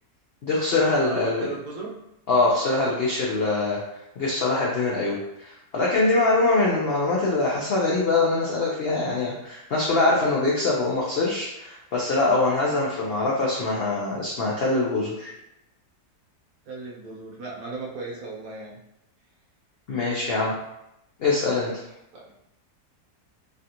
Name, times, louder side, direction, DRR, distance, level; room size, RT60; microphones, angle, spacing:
voice 1, 0.4-1.4 2.3-3.8 4.2-15.3 19.9-20.5 21.2-21.7, left 3 dB, 85° left, -4 dB, 0.5 m, -23 dB
voice 2, 1.0-1.9 16.7-18.8 22.1-22.2, right 3 dB, 65° right, -3 dB, 1.2 m, -36 dB
3.2 x 2.5 x 2.8 m, 0.85 s
omnidirectional pair, 1.7 m